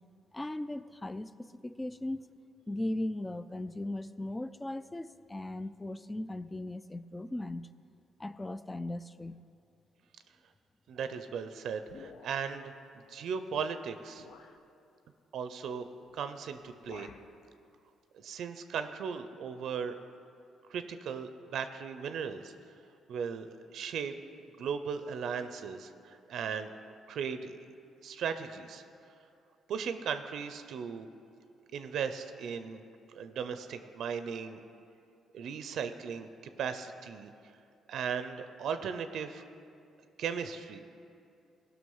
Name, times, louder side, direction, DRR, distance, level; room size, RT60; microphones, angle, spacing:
voice 1, 0.3-2.3 2.7-7.7 8.2-9.5, left 1 dB, 15° left, 14 dB, 0.4 m, -38 dB
voice 2, 10.9-12.7 13.1-14.3 15.3-15.9 16.1-17.1 18.1-20.0 20.7-22.5 23.1-26.7 27.1-27.7 28.0-28.8 29.7-31.1 31.7-32.8 33.1-34.6 35.3-36.3 36.6-37.3 37.9-39.4 40.2-40.8, right 6 dB, 70° right, 10 dB, 0.5 m, -37 dB
sound 1, 11.9-12.7 13.5-13.6 14.2-14.6 16.0-16.3 16.6-17.4, left 5 dB, 70° left, 0.6 m, -53 dB
16.0 x 6.1 x 5.5 m, 2.5 s
cardioid pair, 90°, 0 cm